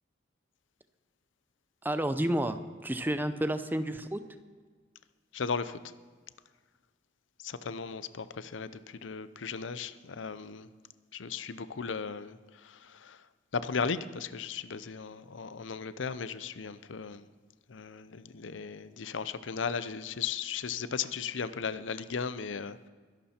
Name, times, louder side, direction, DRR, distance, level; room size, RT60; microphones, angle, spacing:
voice 1, 1.8-4.2, right 1 dB, 10° right, 11 dB, 0.6 m, -30 dB
voice 2, 5.3-5.8 7.4-10.7 11.1-13.2 13.5-17.2 17.7-22.9, left 5 dB, 80° left, 14 dB, 0.6 m, -36 dB
22.5 x 11.5 x 4.4 m, 1.5 s
head